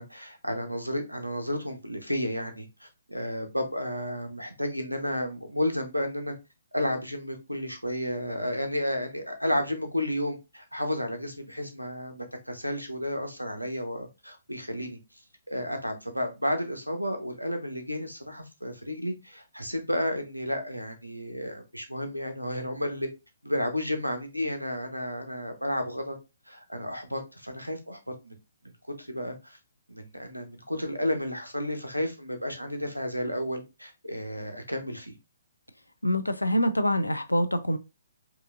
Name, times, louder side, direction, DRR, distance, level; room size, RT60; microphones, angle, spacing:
voice 1, 0.0-6.3 6.7-15.0 15.5-23.1 23.4-26.2 26.5-28.0 28.2-28.3 29.0-29.6 29.9-35.1, equal, 90° right, 1.0 m, -32 dB
voice 2, 36.0-37.8, equal, 85° left, 0.5 m, -25 dB
4.7 x 2.7 x 2.4 m
figure-of-eight pair, 130°, 0 cm